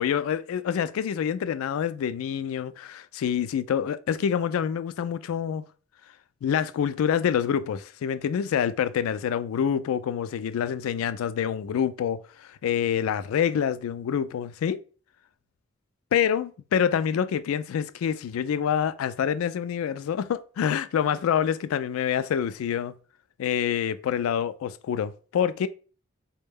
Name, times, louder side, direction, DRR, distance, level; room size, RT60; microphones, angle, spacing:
voice 1, 0.0-5.6 6.4-14.8 16.1-22.9 23.4-25.7, left 8 dB, 90° left, 0.3 m, -26 dB
4.0 x 2.2 x 3.4 m
head